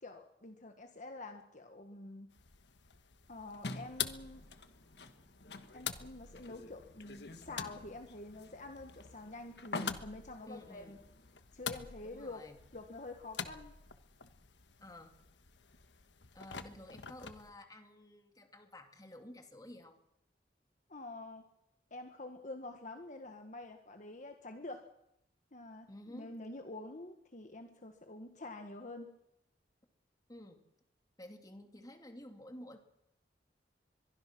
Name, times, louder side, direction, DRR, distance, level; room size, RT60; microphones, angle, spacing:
voice 1, 0.0-2.3 3.3-4.4 5.7-11.0 11.5-12.4 12.7-13.7 20.9-21.5 21.9-24.9 25.5-29.2, left 2 dB, 45° left, 5 dB, 1.5 m, -47 dB
sound 1, 2.3-17.5, left 8 dB, 85° left, 1.4 m, -47 dB
sound 2, 3.6-11.4, left 2 dB, 65° left, 1.5 m, -48 dB
voice 2, 10.5-11.0 12.0-12.6 14.8-15.2 16.3-20.0 25.9-26.4 30.3-30.6 31.2-32.8, left 1 dB, 20° left, 5 dB, 2.5 m, -52 dB
23.0 x 22.5 x 6.1 m, 0.82 s
head